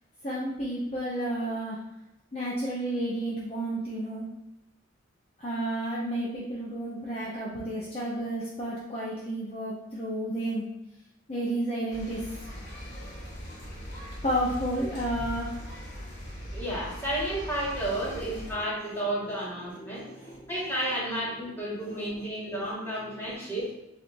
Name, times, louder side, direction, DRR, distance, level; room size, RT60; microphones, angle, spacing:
voice 1, 0.2-1.8 2.3-4.3 5.4-10.7 11.3-12.3 14.2-15.5 19.1-19.3 19.8-20.5 22.0-22.2 22.5-22.6 23.0-23.2, right 1 dB, 30° left, -6 dB, 0.8 m, -32 dB
sound 1, 11.9-18.5, equal, 55° left, 1.1 m, -40 dB
voice 2, 16.5-20.0 20.5-23.7, right 1 dB, 10° left, -7 dB, 1.6 m, -32 dB
7.5 x 2.7 x 2.6 m, 0.91 s
head